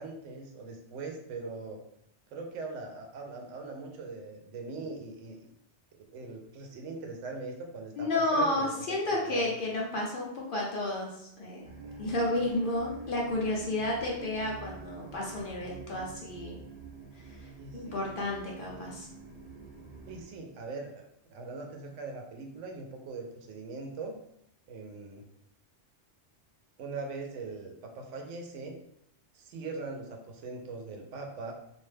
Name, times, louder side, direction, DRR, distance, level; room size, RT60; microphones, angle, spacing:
voice 1, 0.0-1.8 2.3-5.4 6.0-9.6 11.6-12.1 17.6-18.2 20.1-24.2 24.7-25.3 26.8-28.8 29.3-31.5, right 3 dB, 85° right, 2 dB, 0.9 m, -41 dB
voice 2, 8.0-11.7 12.0-16.6 17.7-19.1, left 2 dB, 55° left, -3 dB, 0.7 m, -31 dB
sound 1, 11.6-20.2, right 4 dB, 60° right, 0.5 m, -47 dB
2.6 x 2.1 x 3.2 m, 0.74 s
omnidirectional pair, 1.2 m